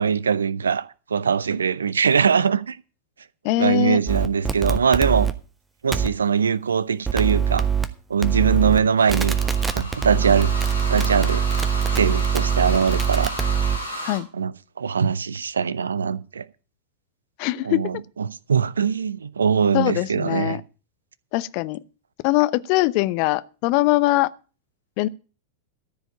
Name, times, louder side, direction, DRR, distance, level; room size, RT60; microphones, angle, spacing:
voice 1, 0.0-2.8 3.6-5.3 5.8-7.7 8.1-9.4 9.7-10.5 10.9-11.4 11.9-13.3 14.3-16.5 17.6-20.6, right 6 dB, 70° right, 0.6 m, -22 dB
voice 2, 3.4-4.0 14.0-14.3 17.4-18.0 19.7-20.6 21.3-21.8 22.2-24.3 25.0-25.1, left 18 dB, 45° left, 0.6 m, -22 dB
sound 1, 4.1-5.3 5.9-6.1 7.0-7.8 8.2-8.8 9.1-13.8, right 7 dB, 10° right, 1.1 m, -23 dB
sound 2, 9.0-14.2, left 1 dB, 85° left, 3.4 m, -33 dB
13.5 x 5.0 x 8.9 m
figure-of-eight pair, 90°, 0 cm